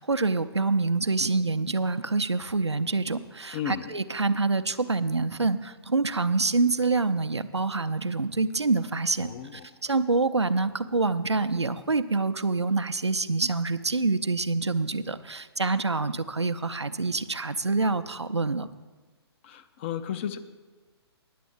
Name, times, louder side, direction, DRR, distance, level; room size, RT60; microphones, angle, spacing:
voice 1, 0.0-9.3 9.8-18.7, right 3 dB, 85° right, 11 dB, 0.6 m, -26 dB
voice 2, 3.5-3.9 9.2-9.7 19.4-20.4, left 9 dB, 25° left, 9 dB, 0.5 m, -34 dB
10.5 x 7.6 x 7.2 m, 1.3 s
figure-of-eight pair, 130°, 14 cm